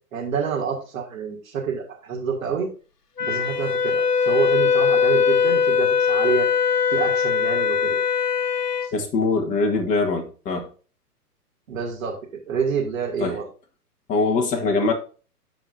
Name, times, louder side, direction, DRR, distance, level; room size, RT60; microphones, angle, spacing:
voice 1, 0.1-2.7 3.2-6.5 6.9-8.0 8.8-8.9 11.7-12.2 12.5-13.5, right 6 dB, 55° right, 2.7 m, -27 dB
Wind instrument woodwind instrument, 3.2-8.9, left 6 dB, 90° left, 0.9 m, -21 dB
voice 2, 8.9-10.7 13.2-13.4 14.1-14.9, left 3 dB, 15° left, 1.5 m, -22 dB
15.0 x 5.0 x 2.7 m
figure-of-eight pair, 125°, 47 cm